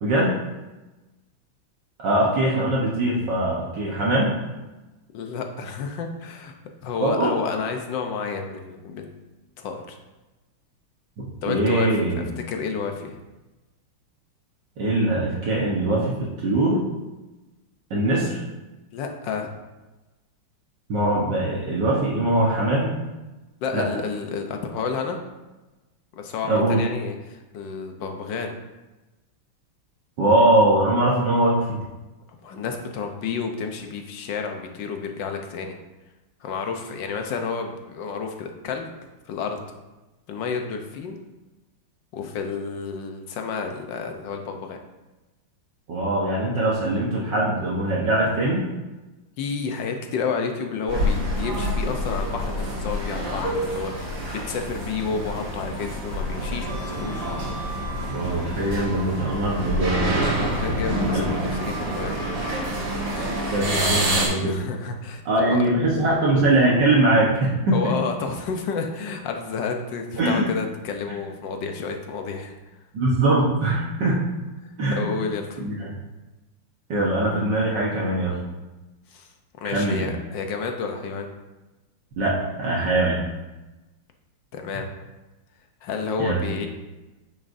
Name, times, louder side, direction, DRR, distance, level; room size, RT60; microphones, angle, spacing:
voice 1, 0.0-0.4 2.0-4.4 7.0-7.3 11.5-12.2 14.8-16.8 17.9-18.4 20.9-23.0 23.7-23.9 26.4-26.8 30.2-31.8 45.9-48.6 58.1-60.0 61.1-61.2 63.4-64.6 65.3-67.8 70.2-70.5 72.9-74.2 74.8-75.1 75.6-75.9 76.9-78.4 79.7-80.1 82.2-83.2 86.2-86.4, right 1 dB, 60° right, -5 dB, 1.7 m, -22 dB
voice 2, 5.1-6.5 6.8-9.1 9.6-10.0 11.4-11.9 12.2-13.2 18.9-19.5 23.6-25.2 26.1-28.5 32.4-35.8 36.4-38.9 39.3-39.6 40.3-41.2 42.1-44.8 49.4-54.2 54.4-57.3 60.3-62.1 64.3-65.6 67.7-72.5 74.6-75.6 79.1-79.3 79.5-81.3 84.5-84.9 85.8-86.7, left 5 dB, 65° left, 4 dB, 1.3 m, -30 dB
sound 1, 50.9-64.3, equal, 90° right, 2.9 m, -27 dB
9.0 x 6.5 x 2.6 m, 1.1 s
omnidirectional pair, 2.4 m